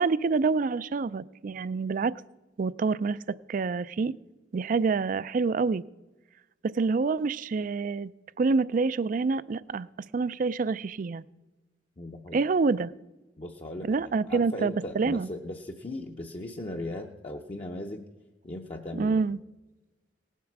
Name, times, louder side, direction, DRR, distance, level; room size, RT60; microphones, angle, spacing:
voice 1, 0.0-2.1 2.6-3.2 3.5-4.1 4.5-5.8 6.7-8.1 8.4-9.9 10.1-11.2 12.3-12.9 13.9-15.3 18.9-19.4, right 4 dB, 45° right, 19 dB, 0.3 m, -27 dB
voice 2, 12.0-12.4 13.4-18.1 18.4-19.2, left 1 dB, 30° left, 1 dB, 0.6 m, -38 dB
18.0 x 7.3 x 5.9 m, 1.1 s
head